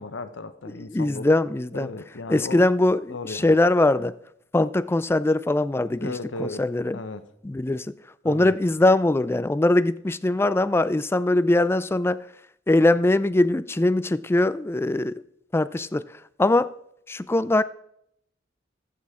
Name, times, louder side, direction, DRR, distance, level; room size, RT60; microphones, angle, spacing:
voice 1, 0.0-1.3 1.7-2.6 3.1-3.6 6.0-6.6 6.9-7.3 8.2-8.5, left 2 dB, 85° left, 0.8 m, -35 dB
voice 2, 0.7-1.9 2.3-4.2 4.5-6.1 6.4-7.0 7.4-7.9 8.2-12.3 12.7-15.2 15.5-16.0 16.4-16.7 17.1-17.6, left 2 dB, 15° left, 0.3 m, -21 dB
15.5 x 8.3 x 3.6 m
head